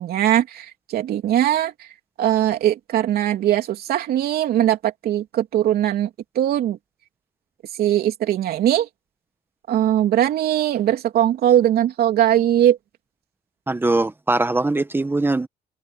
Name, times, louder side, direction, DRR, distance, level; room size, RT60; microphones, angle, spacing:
voice 1, 0.0-1.7 2.2-6.1 6.3-6.8 7.8-8.9 9.7-12.8, right 11 dB, 65° right, 3.3 m, -20 dB
voice 2, 13.7-15.5, right 2 dB, 15° right, 1.3 m, -21 dB
cardioid pair, 110°, 17 cm